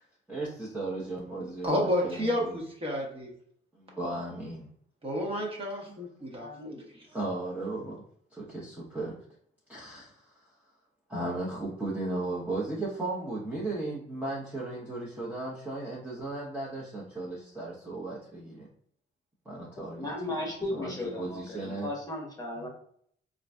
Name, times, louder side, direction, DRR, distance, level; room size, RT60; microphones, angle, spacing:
voice 1, 0.3-2.6 3.7-4.7 7.1-8.0 8.3-9.2 9.7-10.5 11.1-18.7 19.4-20.4 20.7-21.9 22.6-22.7, right 2 dB, 10° right, -7 dB, 0.9 m, -36 dB
voice 2, 1.6-3.3 5.0-7.1, equal, 30° right, -2 dB, 1.1 m, -31 dB
voice 3, 6.4-6.8 19.9-22.7, left 1 dB, 20° left, -2 dB, 1.0 m, -36 dB
3.7 x 2.6 x 2.2 m, 0.65 s
cardioid pair, 90°, 20 cm